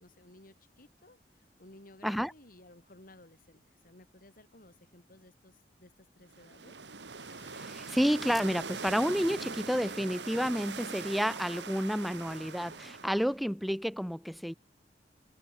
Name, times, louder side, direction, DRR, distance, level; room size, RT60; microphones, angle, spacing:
voice 1, 0.0-6.8, left 2 dB, 55° left, 3.4 m, -57 dB
sound 1, 6.3-13.4, right 5 dB, 80° right, 2.2 m, -42 dB
sound 2, 7.1-13.7, left 3 dB, 70° left, 3.3 m, -61 dB
voice 2, 7.6-14.5, equal, ahead, 0.4 m, -30 dB
Wind instrument woodwind instrument, 8.4-13.2, right 5 dB, 55° right, 4.0 m, -59 dB
head